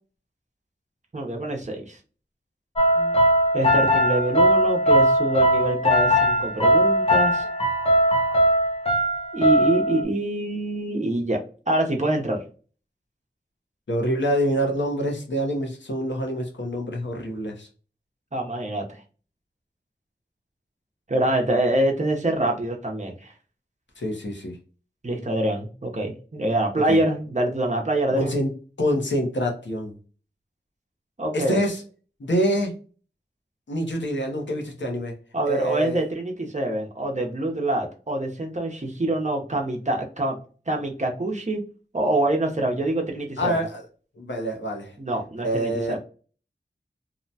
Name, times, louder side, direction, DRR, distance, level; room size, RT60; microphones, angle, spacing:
voice 1, 1.1-2.0 3.5-7.5 9.3-11.4 11.7-12.4 18.3-18.9 21.1-23.3 25.0-28.4 31.2-31.6 35.3-40.4 40.7-41.6 41.9-43.6 45.0-46.0, right 1 dB, 40° right, 1 dB, 0.7 m, -25 dB
sound 1, 2.8-10.0, equal, 30° left, 0.6 m, -20 dB
voice 2, 13.9-17.7 24.0-24.6 26.9-27.0 28.1-28.5 28.8-30.0 31.3-31.8 32.2-32.8 33.7-35.1 35.5-36.1 43.4-43.8 44.2-44.9 45.4-46.0, equal, 85° left, 2 dB, 0.7 m, -26 dB
2.8 x 2.1 x 2.7 m, 0.37 s
wide cardioid pair, 45°, 18 cm